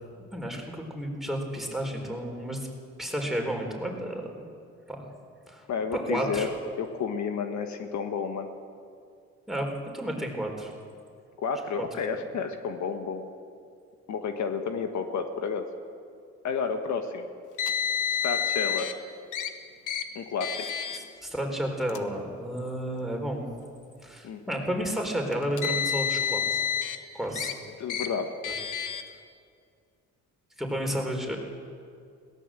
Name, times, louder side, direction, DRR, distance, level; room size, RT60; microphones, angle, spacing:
voice 1, 0.3-2.7 3.0-4.5 4.9-5.1 5.5-5.7 5.9-6.5 9.5-10.7 11.8-12.2 20.9-23.4 24.0-26.6 27.1-27.6 28.4-28.5 30.6-31.4, right 1 dB, ahead, 1 dB, 4.2 m, -32 dB
voice 2, 5.7-6.5 6.8-8.5 11.4-13.3 14.1-15.7 16.4-17.3 18.2-18.9 20.1-20.6 24.2-24.5 27.8-28.3, left 5 dB, 70° left, 6 dB, 1.6 m, -31 dB
Car, 17.6-18.9 19.3-19.5 19.9-20.0 20.4-21.0 21.8-22.0 22.9-23.0 25.3-27.0 27.4-27.5 27.9-28.1 28.4-29.0, left 8 dB, 90° left, 1.3 m, -29 dB
22.0 x 18.0 x 7.6 m, 2.3 s
cardioid pair, 90°, 30 cm